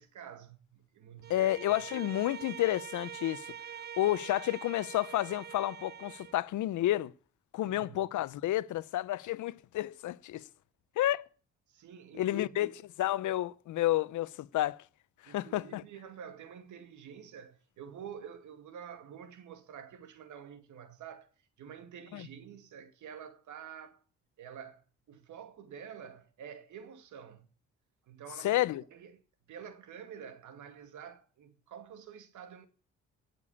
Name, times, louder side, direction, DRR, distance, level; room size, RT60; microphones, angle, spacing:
voice 1, 0.0-1.5 7.6-8.0 11.7-12.7 15.3-21.3 21.6-24.0 24.4-27.5 28.1-28.6 28.9-29.2 29.5-32.7, right 8 dB, 75° right, 2.4 m, -48 dB
Bowed string instrument, 1.2-6.4, right 9 dB, 35° right, 0.6 m, -45 dB
voice 2, 1.3-3.4 4.0-7.1 7.5-10.5 11.0-11.2 12.2-12.7 13.0-14.8 15.2-15.8 22.1-22.3 28.4-28.8, left 14 dB, 75° left, 0.8 m, -30 dB
17.5 x 7.0 x 8.4 m
cardioid pair, 90°, 30 cm